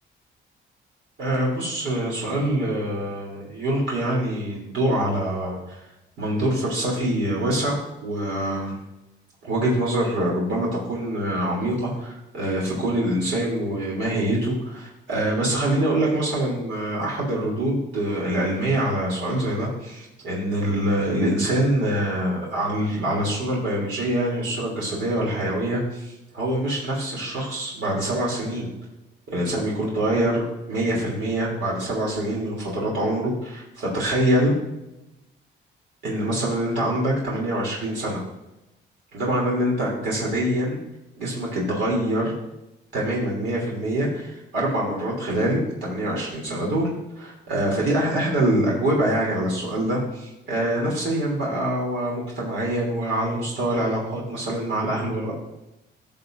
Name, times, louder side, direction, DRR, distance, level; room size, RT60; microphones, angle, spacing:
voice 1, 1.2-5.8 6.2-8.8 9.4-28.7 29.3-34.5 36.0-38.2 39.1-40.8 41.2-42.3 42.9-46.9 47.2-55.3, right 1 dB, 70° right, -4 dB, 3.1 m, -25 dB
14.0 x 6.8 x 2.6 m, 0.93 s
cardioid pair, 90°, 20 cm